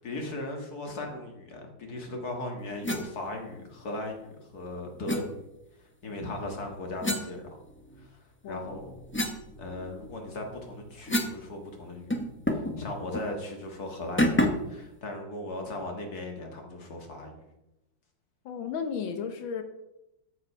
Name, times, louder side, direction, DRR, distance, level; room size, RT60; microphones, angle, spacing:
voice 1, 0.0-5.4 5.8-7.6 8.0-9.0 9.6-12.2 12.5-14.4 14.7-17.4, left 2 dB, 50° left, 3 dB, 2.2 m, -38 dB
sound 1, 2.8-3.1 5.1-5.2 7.0-8.1 8.5-11.4 11.7-11.8 12.1-12.8 13.1-13.3 14.2-14.7, left 1 dB, 20° left, 0.3 m, -30 dB
voice 2, 8.4-8.8 18.4-19.6, left 6 dB, 75° left, 7 dB, 1.6 m, -34 dB
13.5 x 5.1 x 5.6 m, 0.92 s
omnidirectional pair, 2.2 m